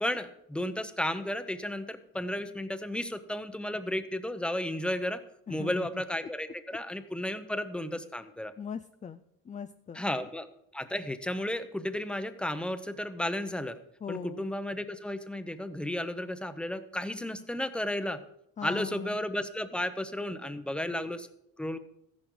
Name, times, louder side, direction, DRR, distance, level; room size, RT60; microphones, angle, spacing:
voice 1, 0.0-5.2 5.5-8.5 9.9-10.5 10.7-13.8 14.1-18.2 18.6-21.3 21.6-21.8, left 1 dB, 5° left, 10 dB, 0.8 m, -33 dB
voice 2, 5.5-6.0 8.6-10.0 14.0-14.4 18.6-19.2, left 7 dB, 20° left, 9 dB, 0.4 m, -40 dB
14.0 x 11.0 x 3.9 m, 0.78 s
cardioid pair, 105°, 36 cm